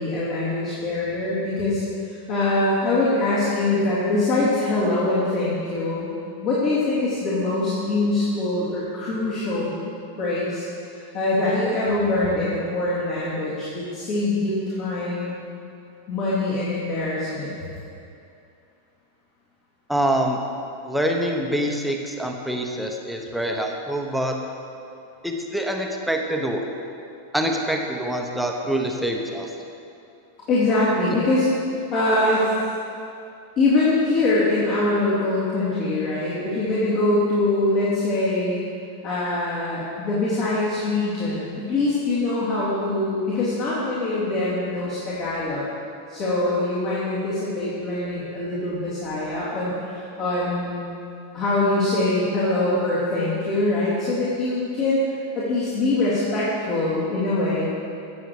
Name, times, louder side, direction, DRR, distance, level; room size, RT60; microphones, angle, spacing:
voice 1, 0.0-6.1 6.4-9.7 10.2-15.3 16.1-17.6 30.5-31.5 31.9-32.5 33.6-38.7 39.0-45.7 46.1-50.8 51.3-55.0 55.3-57.7, left 2 dB, 40° left, -9 dB, 3.0 m, -23 dB
voice 2, 19.9-20.4 20.8-24.3 25.2-26.6 27.3-29.5, right 1 dB, ahead, 1 dB, 1.2 m, -25 dB
17.0 x 7.1 x 4.8 m, 2.5 s
figure-of-eight pair, 90°, 0 cm